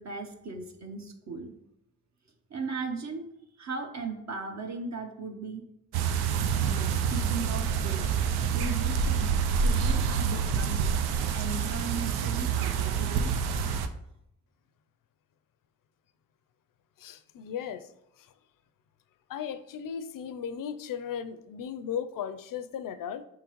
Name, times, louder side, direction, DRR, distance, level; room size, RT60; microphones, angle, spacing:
voice 1, 0.0-1.5 2.5-3.3 3.6-5.6 6.6-8.2 8.5-9.3 9.6-11.0 11.3-13.3, right 4 dB, 45° right, 0.9 m, -37 dB
sound 1, 5.9-13.9, right 6 dB, 80° right, 0.5 m, -27 dB
voice 2, 17.0-17.9 18.2-18.3 19.3-23.3, left 8 dB, 60° left, 0.5 m, -36 dB
4.8 x 3.6 x 3.0 m
supercardioid pair, 40°, 38 cm